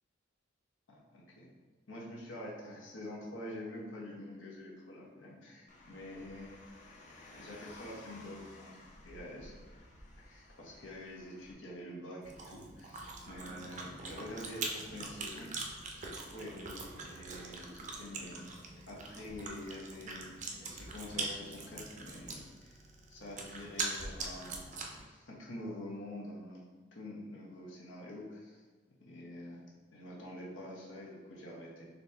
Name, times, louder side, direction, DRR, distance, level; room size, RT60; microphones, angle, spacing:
voice 1, 0.9-1.5 1.9-6.6 7.3-8.8 9.0-9.5 10.2-20.3 20.6-22.8 23.1-24.7 25.0-26.6 26.9-28.6 29.0-31.9, left 1 dB, 80° left, -4 dB, 1.0 m, -46 dB
Car, 5.7-11.5, left 1 dB, 40° left, 0.6 m, -55 dB
Chewing mastication, 12.2-25.0, right 3 dB, 40° right, 0.5 m, -43 dB
4.1 x 2.8 x 3.3 m, 1.4 s
head